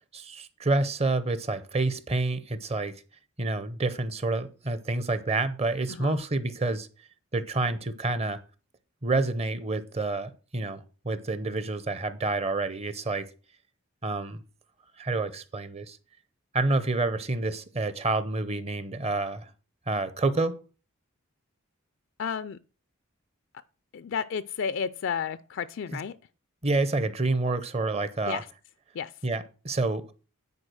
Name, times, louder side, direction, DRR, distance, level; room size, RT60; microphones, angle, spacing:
voice 1, 0.1-2.9 3.4-6.9 7.3-8.4 9.0-13.3 14.0-14.4 15.0-16.0 16.5-19.5 19.9-20.5 26.6-28.4 29.2-30.1, right 2 dB, 30° right, 0.7 m, -28 dB
voice 2, 22.2-22.6 23.9-26.2 28.3-28.5 28.9-29.1, left 6 dB, 60° left, 0.4 m, -32 dB
9.6 x 4.7 x 6.3 m
head